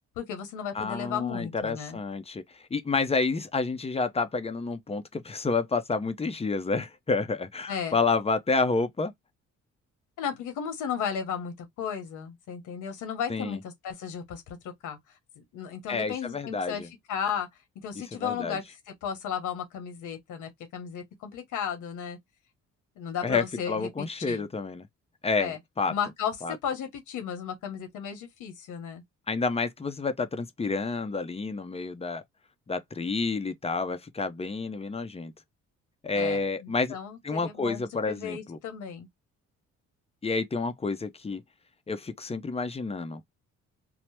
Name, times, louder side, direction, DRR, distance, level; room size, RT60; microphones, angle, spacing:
voice 1, 0.2-2.0 7.7-8.0 10.2-15.0 15.3-17.5 17.7-22.2 23.0-24.5 25.4-25.6 25.9-29.0 36.1-39.1, left 8 dB, 90° left, 1.2 m, -35 dB
voice 2, 0.7-9.1 13.3-13.6 15.9-16.9 18.1-18.6 23.2-24.9 25.2-25.9 26.4-26.6 29.3-32.2 32.7-35.3 36.0-36.9 37.2-38.6 40.2-41.4 41.9-43.2, left 4 dB, 20° left, 0.5 m, -29 dB
2.9 x 2.0 x 3.2 m
cardioid pair, 90°, 30 cm